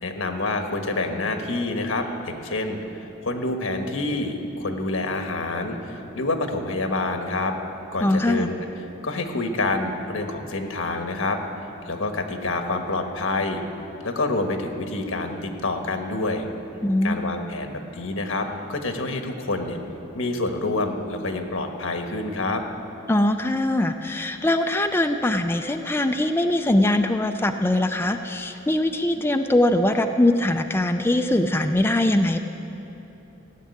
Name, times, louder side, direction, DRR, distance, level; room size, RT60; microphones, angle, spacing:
voice 1, 0.0-7.5 7.9-8.5 9.0-11.4 11.9-13.6 14.0-16.4 17.0-19.8 20.1-22.6, left 2 dB, 85° left, 4 dB, 1.4 m, -27 dB
voice 2, 8.0-8.5 16.8-17.3 23.1-32.4, left 1 dB, 10° left, 6 dB, 0.4 m, -22 dB
15.5 x 7.5 x 9.6 m, 3.0 s
head